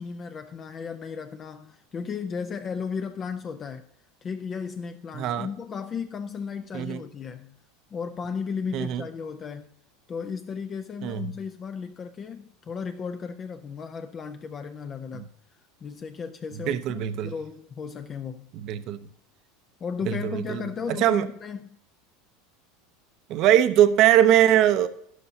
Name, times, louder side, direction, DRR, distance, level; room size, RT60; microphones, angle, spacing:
voice 1, 0.0-3.9 4.2-7.6 7.9-9.7 10.1-15.3 15.8-18.5 19.8-21.7, left 6 dB, 25° left, 0.5 m, -35 dB
voice 2, 5.1-5.5 6.7-7.0 8.7-9.0 11.0-11.3 15.1-15.2 16.7-17.3 18.6-19.1 20.1-20.6 20.9-21.3 23.3-24.9, right 11 dB, 45° right, 0.7 m, -21 dB
12.5 x 10.5 x 2.8 m
supercardioid pair, 135°, 0 cm